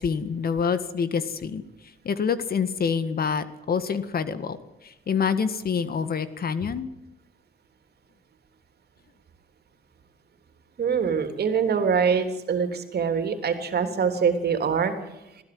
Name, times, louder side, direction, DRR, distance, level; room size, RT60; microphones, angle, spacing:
voice 1, 0.0-1.6 2.0-6.9, left 6 dB, 50° left, 13 dB, 1.8 m, -27 dB
voice 2, 10.8-14.9, right 6 dB, 55° right, 7 dB, 3.5 m, -24 dB
22.0 x 15.5 x 7.9 m, 0.94 s
cardioid pair, 90°, 20 cm